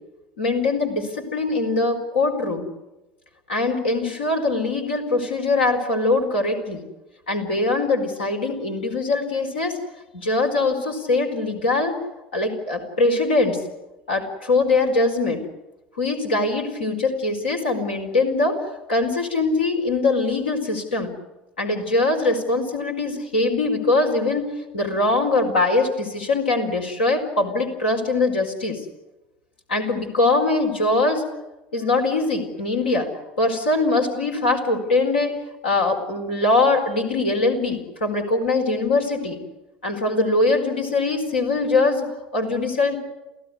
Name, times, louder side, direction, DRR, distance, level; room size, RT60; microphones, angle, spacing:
voice 1, 0.4-2.7 3.5-6.8 7.3-9.8 10.1-11.9 12.3-13.6 14.1-15.4 16.0-18.6 18.9-21.1 21.6-28.8 29.7-31.2 31.7-33.1 33.4-35.4 35.6-39.4 39.8-43.0, left 2 dB, 80° left, 3 dB, 4.6 m, -22 dB
29.0 x 16.0 x 9.8 m, 1.0 s
figure-of-eight pair, 70°, 6 cm